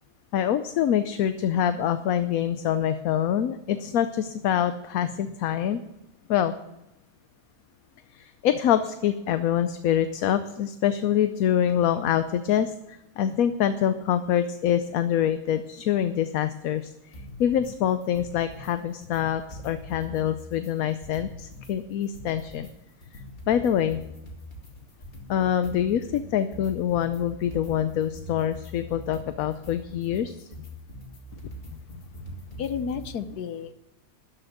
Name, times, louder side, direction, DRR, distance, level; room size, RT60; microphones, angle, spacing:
voice 1, 0.3-5.8 6.3-6.5 8.1-22.7 23.1-23.2 23.5-24.0 25.3-30.5, left 10 dB, 70° left, 10 dB, 1.1 m, -25 dB
sound 1, 17.1-17.7 18.0-18.7 19.0-21.7 22.0-33.1, left 1 dB, 35° left, 2.4 m, -43 dB
voice 2, 32.6-33.7, left 6 dB, 90° left, 11 dB, 1.4 m, -32 dB
13.5 x 5.8 x 9.5 m, 0.91 s
omnidirectional pair, 1.6 m